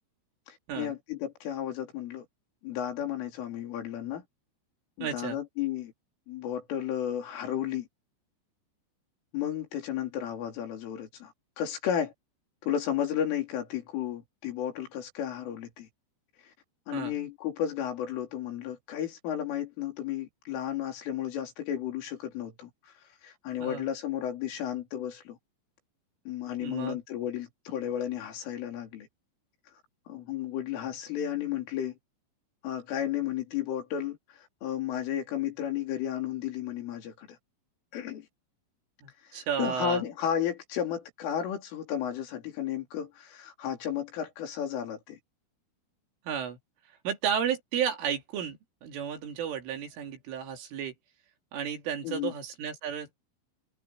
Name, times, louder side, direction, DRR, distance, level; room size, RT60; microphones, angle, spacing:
voice 1, 0.5-2.3 2.6-4.2 5.0-5.9 6.3-7.9 9.3-12.1 12.6-15.9 16.9-22.9 23.2-25.4 26.3-29.1 30.1-32.0 32.6-37.4 37.9-38.3 39.3-45.2 52.0-52.3, left 10 dB, 75° left, 6.2 m, -33 dB
voice 2, 5.0-5.4 16.9-17.1 23.6-23.9 26.6-27.0 39.0-40.0 46.3-46.6 47.1-50.9 51.5-53.2, right 8 dB, 75° right, 5.5 m, -33 dB
omnidirectional pair, 5.7 m